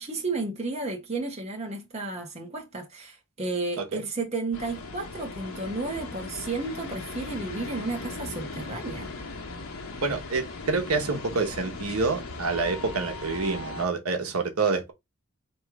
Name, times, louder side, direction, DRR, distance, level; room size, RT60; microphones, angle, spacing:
voice 1, 0.0-9.1, right 3 dB, 30° right, 1.1 m, -32 dB
sound 1, 4.5-13.9, left 3 dB, 85° left, 1.1 m, -38 dB
voice 2, 10.0-14.9, right 4 dB, 90° right, 1.0 m, -27 dB
3.2 x 3.1 x 4.6 m
head